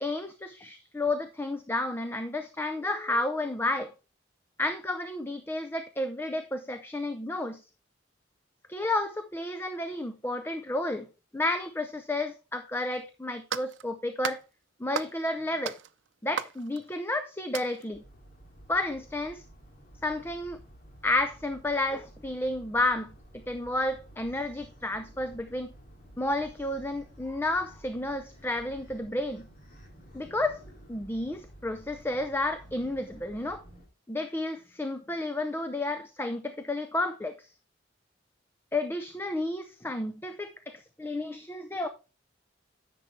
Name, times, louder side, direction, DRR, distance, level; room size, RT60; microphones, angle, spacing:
voice 1, 0.0-3.9 4.6-7.6 8.7-11.1 11.3-14.4 14.8-15.8 16.2-18.0 18.7-19.4 20.0-20.6 21.0-23.1 23.5-25.7 26.2-29.5 30.1-30.6 30.9-33.6 34.1-37.5 38.7-41.9, left 2 dB, 10° left, 0.6 m, -31 dB
sound 1, 12.9-13.0 13.5-13.9 14.2-14.5 14.9-15.3 15.7-17.1 17.5-17.9, right 7 dB, 85° right, 0.6 m, -36 dB
sound 2, 17.9-33.9, right 1 dB, 50° left, 2.5 m, -52 dB
10.5 x 6.9 x 3.2 m
head